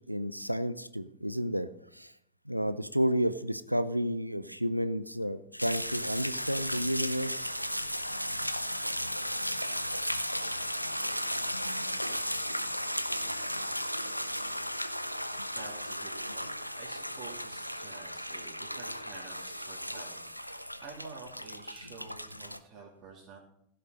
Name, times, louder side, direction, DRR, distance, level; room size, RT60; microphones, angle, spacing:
voice 1, 0.1-1.7 1.9-2.1 2.5-7.5 11.5-12.0, equal, 90° right, 14 dB, 0.5 m, -31 dB
sound 1, 5.6-22.6, equal, 90° left, 0.6 m, -35 dB
voice 2, 15.5-23.4, right 4 dB, 30° right, -4 dB, 2.9 m, -50 dB
15.5 x 6.7 x 5.3 m, 0.73 s
figure-of-eight pair, 90°, 0 cm